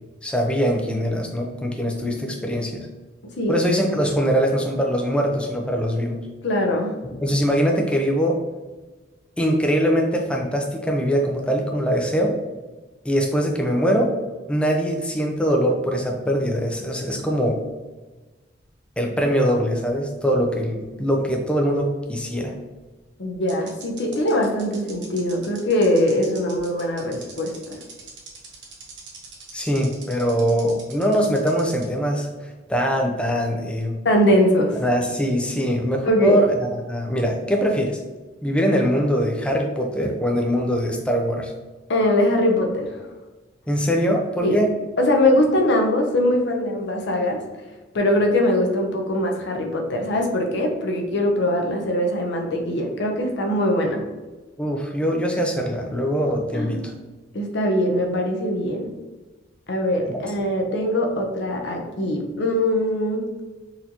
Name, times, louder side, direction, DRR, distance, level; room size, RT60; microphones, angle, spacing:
voice 1, 0.2-2.9 3.5-6.2 7.2-8.4 9.4-12.4 13.0-14.1 14.5-17.6 19.0-22.5 29.5-32.3 32.7-34.0 34.8-36.5 36.8-38.0 38.4-41.5 43.7-44.7 54.6-56.9, equal, 5° left, 1 dB, 0.4 m, -22 dB
voice 2, 6.4-6.9 23.2-27.8 34.0-34.8 36.0-36.4 41.9-43.0 44.4-44.6 45.0-47.4 47.9-54.0 56.5-56.8 57.3-58.9 59.7-63.3, left 1 dB, 60° left, 2 dB, 0.6 m, -21 dB
sound 1, 22.8-22.9 23.5-31.9, right 5 dB, 60° right, 0.8 m, -42 dB
4.1 x 2.6 x 2.8 m, 1.2 s
head